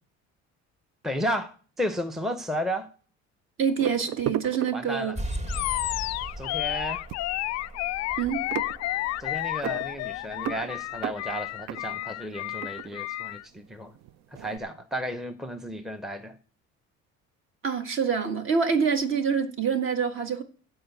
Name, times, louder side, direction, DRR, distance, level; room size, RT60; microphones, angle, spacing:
voice 1, 1.0-2.9 4.7-5.1 6.4-7.0 9.2-13.9 14.3-16.4, equal, ahead, 0.7 m, -33 dB
voice 2, 3.6-5.1 8.2-8.4 17.6-20.4, right 6 dB, 45° right, 1.7 m, -26 dB
sound 1, 3.8-5.4 6.0-6.2 6.5-13.7 13.9-14.6, right 11 dB, 65° right, 0.6 m, -36 dB
sound 2, 5.1-12.3, equal, 25° right, 1.6 m, -40 dB
Animal, 5.5-13.4, left 18 dB, 60° left, 0.4 m, -31 dB
14.0 x 4.8 x 8.1 m
cardioid pair, 120°, 29 cm